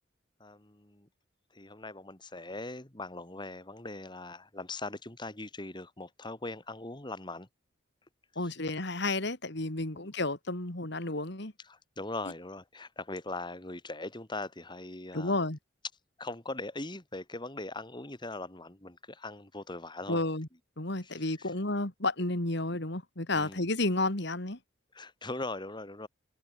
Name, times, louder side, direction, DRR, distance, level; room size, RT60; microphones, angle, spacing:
voice 1, 0.4-1.1 1.5-7.5 8.3-8.5 9.9-10.1 11.6-15.5 16.2-20.2 21.0-21.5 23.3-23.7 24.9-26.1, left 2 dB, 25° left, 2.5 m, -41 dB
voice 2, 8.4-11.5 15.1-15.6 20.1-20.5 20.8-24.6, left 2 dB, 60° left, 2.8 m, -31 dB
head